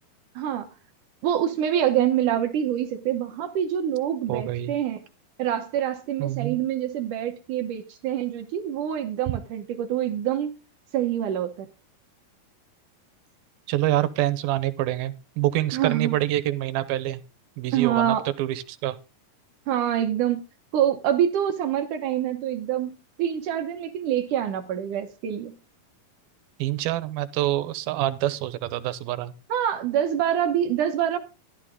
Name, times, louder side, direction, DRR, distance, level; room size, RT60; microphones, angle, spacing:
voice 1, 0.4-0.7 1.2-5.0 5.4-10.5 10.9-11.7 15.7-16.1 17.7-18.3 19.7-20.4 20.7-25.6 29.5-31.2, right 10 dB, 65° right, 2.4 m, -26 dB
voice 2, 4.3-4.7 6.2-6.6 13.7-17.2 17.6-19.0 26.6-29.3, right 14 dB, 85° right, 2.7 m, -26 dB
14.0 x 12.0 x 3.8 m
omnidirectional pair, 4.3 m